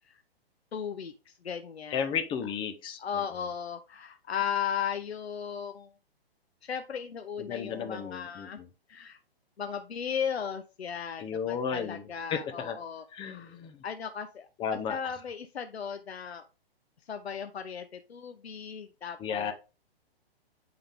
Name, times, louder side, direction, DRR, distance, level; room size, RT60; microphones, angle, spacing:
voice 1, 0.7-2.1 3.0-5.9 6.6-8.6 8.9-9.2 9.6-13.6 13.8-14.5 14.9-16.5 17.1-19.5, left 7 dB, 80° left, 8 dB, 0.7 m, -36 dB
voice 2, 1.9-3.0 7.4-8.7 11.2-12.8 13.1-13.8 14.6-15.2 19.2-19.5, left 7 dB, 15° left, 7 dB, 0.6 m, -34 dB
8.7 x 3.8 x 3.5 m, 0.32 s
figure-of-eight pair, 125°, 31 cm